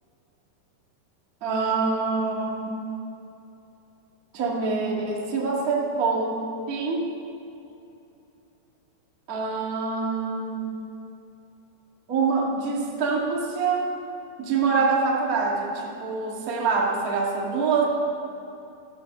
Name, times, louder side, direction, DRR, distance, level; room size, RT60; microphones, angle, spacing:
voice 1, 1.4-2.8 4.3-6.4 6.7-7.1 9.3-10.7 12.1-13.9 14.4-17.8, right 4 dB, 70° right, -3 dB, 0.8 m, -25 dB
14.5 x 8.9 x 6.5 m, 2.8 s
omnidirectional pair, 4.9 m